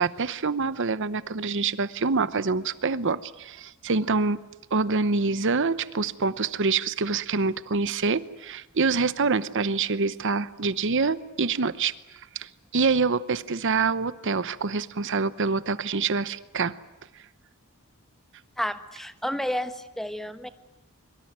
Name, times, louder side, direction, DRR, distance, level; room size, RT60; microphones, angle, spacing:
voice 1, 0.0-4.4 4.7-11.9 12.3-16.7, right 4 dB, 60° right, 15 dB, 0.9 m, -26 dB
voice 2, 18.6-20.5, equal, ahead, 10 dB, 1.2 m, -31 dB
24.0 x 24.0 x 9.6 m, 0.98 s
head